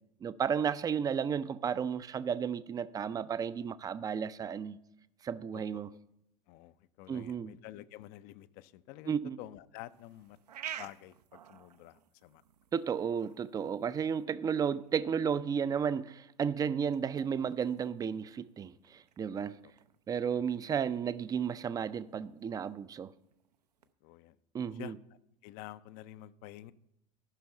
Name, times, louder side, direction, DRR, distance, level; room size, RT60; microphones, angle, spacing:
voice 1, 0.2-4.8 5.2-5.9 7.1-7.6 9.1-9.4 12.7-19.6 20.1-23.1 24.5-25.0, right 7 dB, 20° right, 0.4 m, -33 dB
voice 2, 6.5-10.4 10.8-12.4 19.4-19.5 24.0-24.9 25.4-26.7, left 14 dB, 45° left, 0.5 m, -49 dB
sound 1, 9.8-23.9, right 10 dB, 75° right, 0.5 m, -53 dB
13.0 x 6.0 x 5.5 m
figure-of-eight pair, 75°, 20 cm